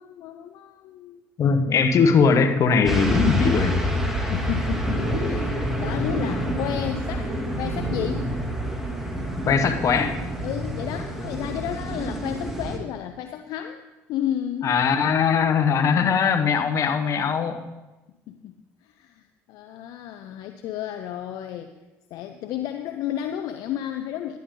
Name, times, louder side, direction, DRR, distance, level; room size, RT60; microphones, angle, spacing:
voice 1, 0.0-1.3 4.3-5.5 5.8-8.3 10.4-13.8 14.1-14.8 18.3-18.6 18.8-21.7 22.1-24.4, left 11 dB, 70° left, 7 dB, 0.6 m, -32 dB
voice 2, 1.4-3.8 9.5-10.2 14.6-17.6, left 5 dB, 50° left, 6 dB, 1.2 m, -20 dB
sound 1, 2.8-12.8, equal, 5° right, 2.0 m, -27 dB
10.5 x 10.5 x 3.8 m, 1.1 s
supercardioid pair, 75°, 7 cm